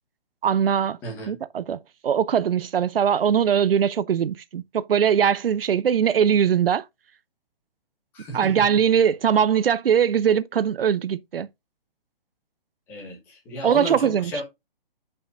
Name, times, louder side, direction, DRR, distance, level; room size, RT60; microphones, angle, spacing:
voice 1, 0.4-1.0 1.3-6.8 8.3-11.5 13.6-14.3, right 8 dB, 75° right, 0.6 m, -21 dB
voice 2, 1.0-1.3 8.1-8.6 12.9-14.4, right 1 dB, 5° left, 1.2 m, -33 dB
8.9 x 5.6 x 2.5 m
hypercardioid pair, 175°, 29 cm